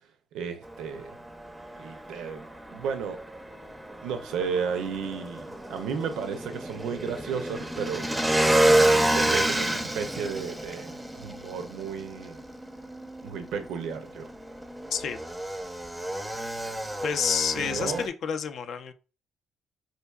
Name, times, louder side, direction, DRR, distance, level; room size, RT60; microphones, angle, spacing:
voice 1, 0.3-1.2 1.8-3.2 4.0-8.1 8.7-12.4 13.2-14.3 17.6-18.1, right 6 dB, 85° right, 0.5 m, -33 dB
Motorcycle / Engine, 0.6-18.1, right 1 dB, 10° right, 0.5 m, -29 dB
voice 2, 14.9-15.2 17.0-18.9, left 7 dB, 65° left, 0.4 m, -29 dB
4.4 x 2.6 x 2.3 m
cardioid pair, 90°, 0 cm